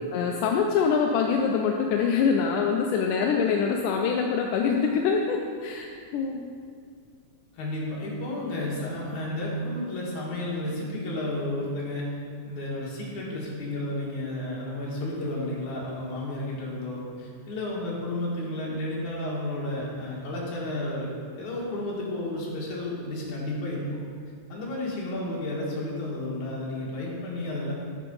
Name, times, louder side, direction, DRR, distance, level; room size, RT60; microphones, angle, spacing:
voice 1, 0.1-6.5, left 6 dB, 90° left, 1 dB, 2.1 m, -25 dB
voice 2, 7.5-12.1 12.4-24.0 24.5-27.7, left 1 dB, 70° left, -5 dB, 3.0 m, -32 dB
9.3 x 4.6 x 5.3 m, 2.1 s
omnidirectional pair, 3.6 m